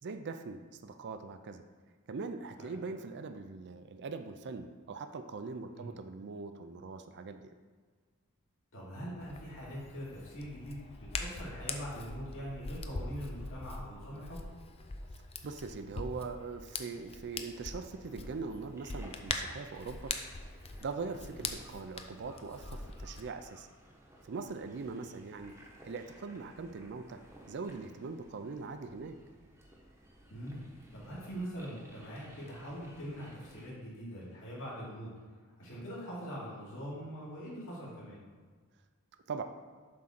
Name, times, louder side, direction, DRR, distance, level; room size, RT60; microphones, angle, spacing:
voice 1, 0.0-1.6 2.1-7.4 15.4-20.1 20.8-23.7 24.2-27.2 27.5-29.2 39.3-39.4, right 4 dB, 50° right, 8 dB, 0.4 m, -41 dB
voice 2, 8.7-14.4 21.3-21.4 24.9-25.2 30.3-35.1 35.6-38.2, equal, 60° left, -7 dB, 2.3 m, -43 dB
Hands, 9.2-23.2, left 3 dB, 25° left, 0.5 m, -43 dB
sound 1, 17.3-33.7, right 1 dB, 10° right, 0.9 m, -58 dB
7.6 x 3.7 x 5.9 m, 1.5 s
head